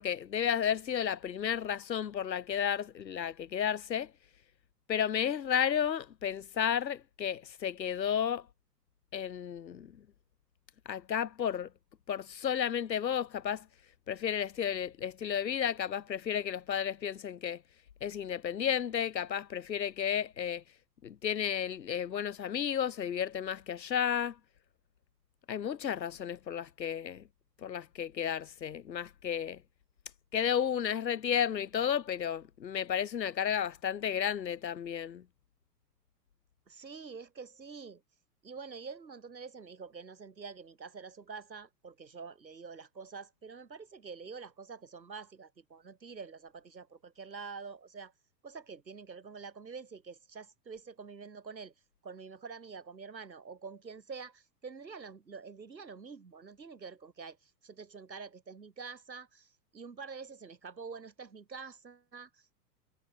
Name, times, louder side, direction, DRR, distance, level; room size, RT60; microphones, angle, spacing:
voice 1, 0.0-4.1 4.9-8.5 9.1-10.0 10.9-11.7 12.1-13.7 14.1-17.6 18.0-20.6 21.0-24.4 25.5-27.2 27.6-29.6 30.3-35.2, left 8 dB, 85° left, 1.0 m, -32 dB
voice 2, 36.7-38.0 38.4-48.1 48.4-51.7 52.0-62.6, right 5 dB, 85° right, 3.4 m, -47 dB
figure-of-eight pair, 110°, 50 cm